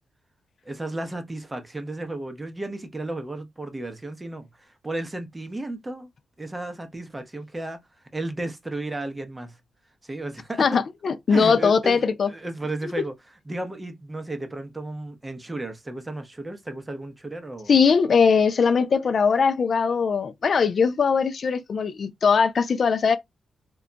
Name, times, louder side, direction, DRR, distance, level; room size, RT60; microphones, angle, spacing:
voice 1, 0.7-6.1 6.4-7.8 8.1-9.6 10.0-10.8 11.3-13.1 13.5-17.7, right 2 dB, 20° right, 0.7 m, -33 dB
voice 2, 10.6-12.3 13.0-13.1 17.7-23.2, left 5 dB, 60° left, 0.3 m, -20 dB
2.2 x 2.1 x 3.8 m
cardioid pair, 80°, 0 cm